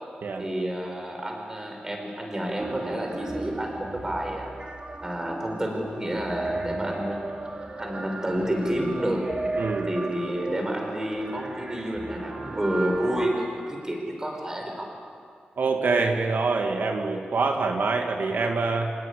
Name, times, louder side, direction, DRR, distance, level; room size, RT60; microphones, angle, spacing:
voice 1, 0.4-4.5 5.0-7.2 7.8-9.3 9.8-14.9, right 1 dB, 20° right, 2 dB, 5.0 m, -29 dB
sound 1, 2.6-13.3, right 2 dB, 35° right, 2.5 m, -35 dB
voice 2, 9.6-9.9 15.6-18.9, right 4 dB, 80° right, 3 dB, 1.9 m, -25 dB
26.0 x 18.5 x 10.0 m, 2.3 s
wide cardioid pair, 165°, 3 cm